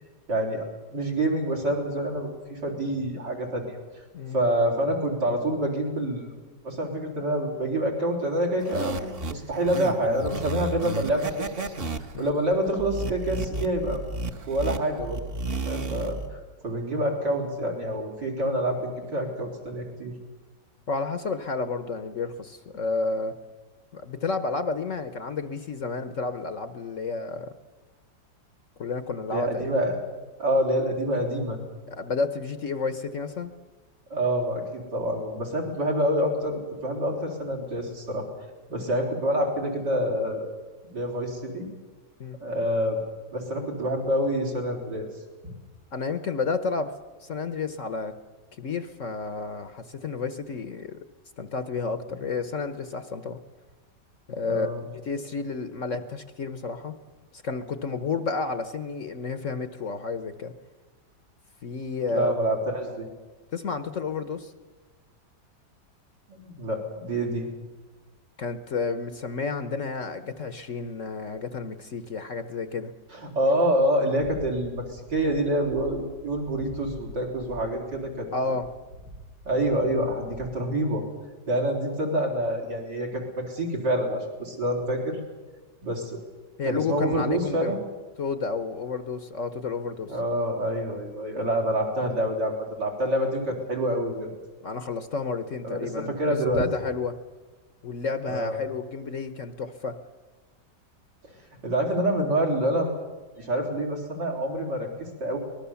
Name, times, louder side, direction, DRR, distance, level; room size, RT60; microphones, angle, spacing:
voice 1, 0.3-0.6 0.9-3.7 4.3-6.3 6.6-11.6 12.2-14.0 14.4-15.2 15.7-20.1 29.3-30.0 30.4-31.6 34.1-38.3 38.7-40.5 40.9-41.7 42.4-43.0 43.3-45.1 54.5-54.8 62.1-63.1 66.3-67.5 73.1-78.3 79.4-81.0 81.5-85.2 85.8-86.2 86.6-87.8 90.1-94.3 95.6-96.6 98.3-98.6 101.2-101.3 101.6-102.9 103.4-104.9 105.2-105.4, right 1 dB, 75° right, -1 dB, 4.8 m, -27 dB
sound 1, 8.6-16.3, right 2 dB, 35° right, 1.3 m, -33 dB
voice 2, 20.9-23.3 23.9-27.5 28.8-29.8 31.9-33.5 42.2-42.4 45.9-46.9 47.2-48.1 48.5-51.0 51.4-53.4 54.3-56.9 57.3-60.5 61.6-62.3 63.5-64.5 68.4-72.9 78.3-78.7 86.6-87.8 88.2-90.2 94.6-96.1 96.6-97.2 97.8-99.9, left 4 dB, 50° left, 10 dB, 1.2 m, -31 dB
sound 2, 74.1-78.3 78.6-80.7, equal, 90° right, 7.9 m, -45 dB
24.0 x 19.5 x 7.1 m, 1.3 s
omnidirectional pair, 1.9 m